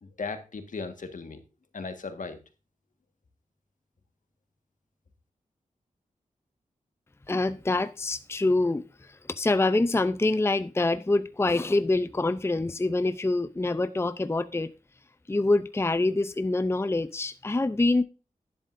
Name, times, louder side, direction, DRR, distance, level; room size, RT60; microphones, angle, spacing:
voice 1, 0.0-1.4 1.7-2.4, left 4 dB, 70° left, 1.6 m, -37 dB
voice 2, 7.3-14.7 15.3-18.0, left 2 dB, 20° left, 0.6 m, -25 dB
11.0 x 10.5 x 2.6 m
cardioid pair, 60°, 14 cm